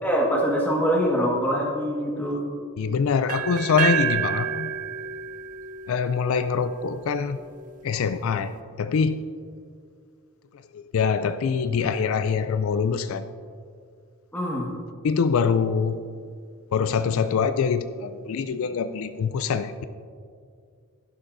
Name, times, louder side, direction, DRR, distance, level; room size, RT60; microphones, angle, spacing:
voice 1, 0.0-2.4 14.3-14.7, equal, 10° left, -3 dB, 1.5 m, -24 dB
voice 2, 2.8-4.7 5.9-7.4 7.8-8.5 8.8-9.2 10.7-13.3 15.0-16.0 16.7-19.8, left 6 dB, 70° left, 11 dB, 0.3 m, -24 dB
sound 1, 3.3-7.2, right 10 dB, 35° right, 0.4 m, -29 dB
11.5 x 11.0 x 2.6 m, 2.2 s
head